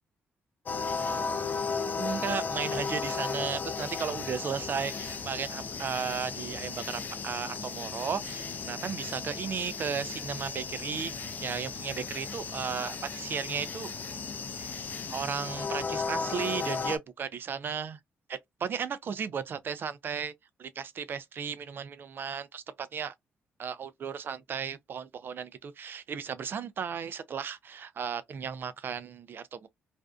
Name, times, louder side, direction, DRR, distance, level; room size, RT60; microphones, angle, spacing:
sound 1, 0.7-17.0, left 4 dB, 45° left, 0.5 m, -35 dB
voice 1, 2.0-14.0 14.6-14.8 15.1-18.0 18.3-20.3 20.6-23.1 23.6-29.7, right 7 dB, 50° right, 0.4 m, -35 dB
2.5 x 2.3 x 2.2 m
cardioid pair, 80°, 5 cm